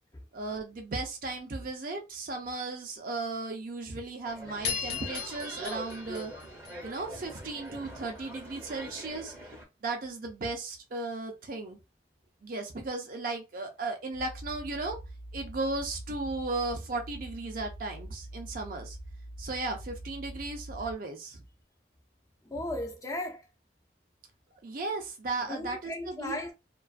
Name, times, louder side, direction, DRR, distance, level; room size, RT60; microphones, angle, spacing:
voice 1, 0.3-6.3 6.8-9.3 9.8-11.8 12.4-15.0 15.3-19.0 19.4-21.4 24.6-26.5, right 3 dB, 50° right, 0.5 m, -35 dB
sound 1, 4.2-9.6, right 1 dB, 15° right, 0.8 m, -44 dB
sound 2, 4.6-7.2, left 7 dB, 60° left, 0.8 m, -37 dB
sound 3, 14.1-20.9, right 1 dB, 75° right, 0.8 m, -44 dB
voice 2, 22.4-23.5 25.5-26.5, left 1 dB, 20° left, 0.4 m, -36 dB
2.4 x 2.3 x 2.3 m
head